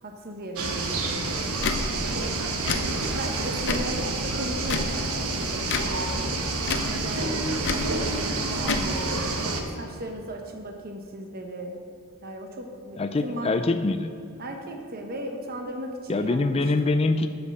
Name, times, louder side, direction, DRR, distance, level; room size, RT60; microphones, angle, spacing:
voice 1, 0.0-1.7 3.1-9.2 9.8-11.8 12.2-13.5 14.4-16.6, right 1 dB, 45° right, 3 dB, 1.0 m, -37 dB
sound 1, 0.6-9.6, right 2 dB, 85° right, 1.2 m, -28 dB
Tick / Tick-tock, 1.6-1.8 2.6-2.8 3.6-3.9 4.6-4.9 5.6-5.9 6.6-6.9 7.6-7.9 8.6-8.9, left 4 dB, 55° left, 0.7 m, -28 dB
voice 2, 12.9-14.1 16.1-17.3, left 2 dB, 30° left, 8 dB, 0.4 m, -24 dB
8.3 x 7.8 x 6.6 m, 2.5 s
head